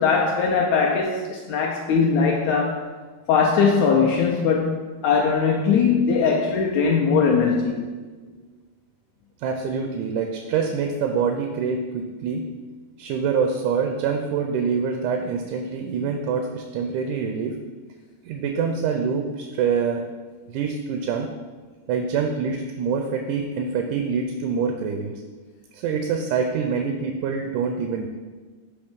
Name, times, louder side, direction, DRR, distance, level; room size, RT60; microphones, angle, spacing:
voice 1, 0.0-2.9 3.3-7.9, left 5 dB, 80° left, -1 dB, 1.7 m, -20 dB
voice 2, 9.4-12.4 13.0-17.6 18.2-20.1 20.5-21.3 21.9-25.1 25.7-28.1, right 6 dB, 80° right, 4 dB, 1.9 m, -25 dB
8.0 x 3.0 x 5.2 m, 1.4 s
omnidirectional pair, 3.7 m